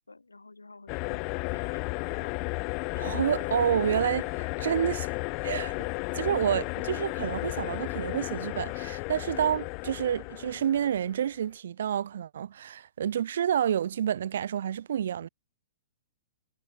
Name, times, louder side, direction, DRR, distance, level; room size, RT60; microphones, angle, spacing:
voice 1, 0.0-2.3, left 3 dB, 85° left, 7.2 m, -52 dB
sound 1, 0.9-11.2, left 33 dB, 35° left, 0.7 m, -33 dB
voice 2, 3.0-5.1 5.4-5.7 6.1-15.3, right 9 dB, 60° right, 0.9 m, -29 dB
figure-of-eight pair, 110°, 0 cm